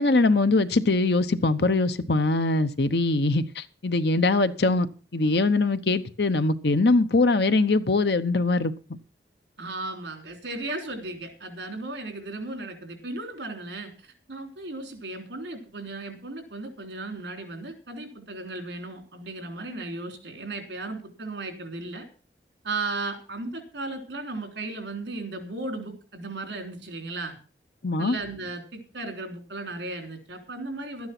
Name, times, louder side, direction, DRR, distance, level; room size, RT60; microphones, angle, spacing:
voice 1, 0.0-9.0 27.8-28.2, left 2 dB, 70° left, 11 dB, 1.0 m, -22 dB
voice 2, 9.6-22.1 22.6-27.4 28.0-31.1, right 2 dB, 80° right, 6 dB, 3.4 m, -35 dB
12.5 x 9.6 x 6.0 m, 0.37 s
head